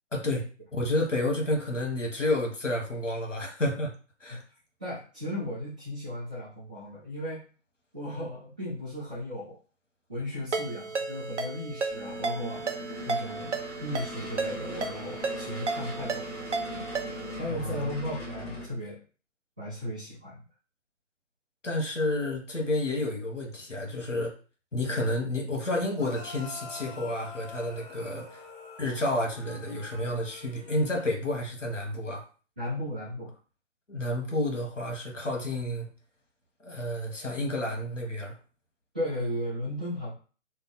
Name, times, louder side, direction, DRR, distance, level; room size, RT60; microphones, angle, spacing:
voice 1, 0.1-0.5 0.7-3.9 4.2-4.4 17.5-17.9 21.6-24.3 24.7-28.4 28.8-32.2 33.9-35.9 36.6-38.3, left 1 dB, 80° left, 1 dB, 1.2 m, -30 dB
voice 2, 4.8-7.4 7.9-9.6 10.1-16.2 16.7-16.8 17.4-19.0 19.6-20.4 32.6-33.3 38.9-40.1, equal, 10° right, -15 dB, 0.5 m, -35 dB
Ringtone, 10.5-17.4, right 4 dB, 70° right, 0.7 m, -34 dB
sound 1, 11.9-18.7, left 1 dB, 15° left, 1.3 m, -40 dB
sound 2, 26.0-31.1, left 3 dB, 40° left, 1.0 m, -46 dB
2.7 x 2.2 x 4.1 m, 0.38 s
figure-of-eight pair, 135°, 37 cm